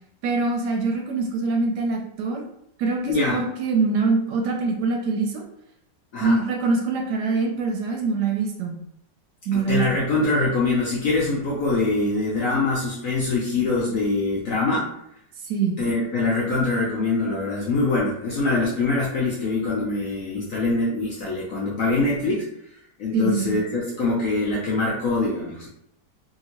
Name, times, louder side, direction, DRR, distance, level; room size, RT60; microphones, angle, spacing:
voice 1, 0.2-2.4 2.8-5.4 6.2-8.8 9.5-9.8 15.5-15.8 23.1-23.6, right 4 dB, 75° right, 1 dB, 1.1 m, -24 dB
voice 2, 3.0-3.4 6.1-6.4 9.5-14.9 15.8-22.5 23.0-25.7, left 3 dB, 70° left, -5 dB, 0.8 m, -24 dB
2.8 x 2.7 x 2.9 m, 0.76 s
omnidirectional pair, 2.0 m